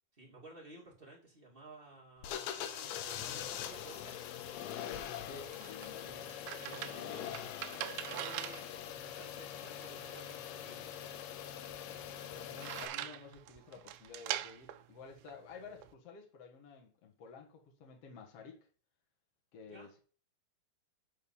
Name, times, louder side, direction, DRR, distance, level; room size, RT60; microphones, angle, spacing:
voice 1, 0.2-4.2 6.5-11.0 19.7-19.9, right 2 dB, 25° right, 1.1 m, -54 dB
sound 1, 2.2-12.9, left 10 dB, 75° left, 3.1 m, -43 dB
sound 2, 5.1-15.9, right 14 dB, 85° right, 2.8 m, -44 dB
voice 2, 5.2-6.3 12.3-18.7 19.5-20.0, left 5 dB, 60° left, 1.6 m, -52 dB
10.5 x 4.1 x 7.1 m
omnidirectional pair, 5.6 m